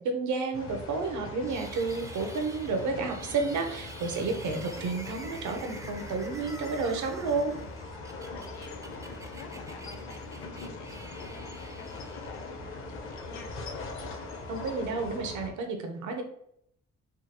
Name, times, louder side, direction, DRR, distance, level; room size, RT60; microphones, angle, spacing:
voice 1, 0.0-7.6 14.5-16.2, right 4 dB, 75° right, 5 dB, 0.7 m, -31 dB
sound 1, 0.5-15.5, left 3 dB, 45° left, 0.7 m, -41 dB
sound 2, 1.4-12.7, right 2 dB, 10° right, 0.4 m, -48 dB
voice 2, 8.1-13.6, left 6 dB, 85° left, 3 dB, 0.6 m, -50 dB
3.6 x 2.3 x 2.9 m, 0.72 s
cardioid pair, 90°, 30 cm